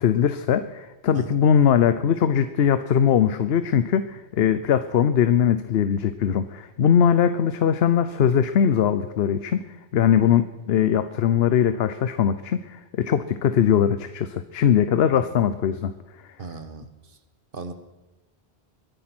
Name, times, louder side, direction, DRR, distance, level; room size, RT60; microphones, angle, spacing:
voice 1, 0.0-9.6 9.9-15.9, left 8 dB, 75° left, 11 dB, 0.9 m, -21 dB
voice 2, 16.4-16.9 17.5-17.7, right 4 dB, 55° right, 9 dB, 1.4 m, -36 dB
21.5 x 10.5 x 6.1 m, 1.1 s
omnidirectional pair, 1.1 m